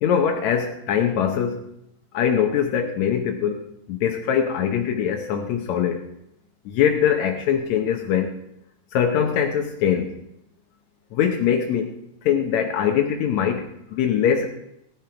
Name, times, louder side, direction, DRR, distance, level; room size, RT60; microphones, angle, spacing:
voice 1, 0.0-1.6 2.1-6.0 6.6-8.3 8.9-10.2 11.1-11.9 12.2-14.5, left 8 dB, 85° left, 4 dB, 1.6 m, -22 dB
15.5 x 11.5 x 4.8 m, 0.80 s
omnidirectional pair, 4.6 m